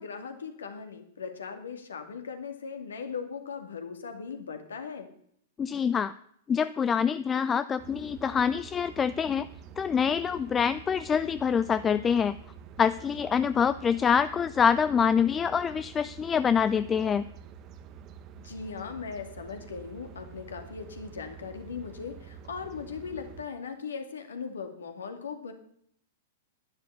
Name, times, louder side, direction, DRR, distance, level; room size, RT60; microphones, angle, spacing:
voice 1, 0.0-5.1 18.4-25.5, left 6 dB, 70° left, 6 dB, 2.2 m, -39 dB
voice 2, 5.6-6.1 6.5-9.5 9.8-12.4 12.8-17.2, left 7 dB, 20° left, 14 dB, 0.4 m, -25 dB
sound 1, 7.8-23.5, right 8 dB, 35° right, 1.1 m, -48 dB
11.0 x 11.0 x 6.9 m, 0.68 s
figure-of-eight pair, 100°, 0 cm